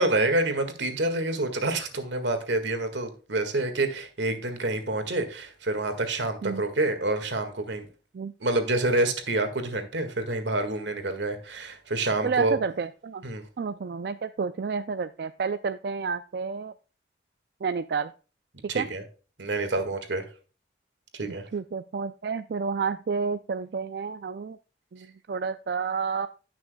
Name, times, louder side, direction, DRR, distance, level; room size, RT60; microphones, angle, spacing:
voice 1, 0.0-7.9 8.4-12.6 13.2-13.4 18.7-19.0 19.4-20.2 21.1-21.5, right 2 dB, 85° right, 1.8 m, -27 dB
voice 2, 12.2-13.3 13.6-16.7 17.6-18.1 18.7-18.9 21.3-24.6 24.9-26.3, right 5 dB, 60° right, 0.4 m, -30 dB
16.5 x 6.1 x 2.2 m
head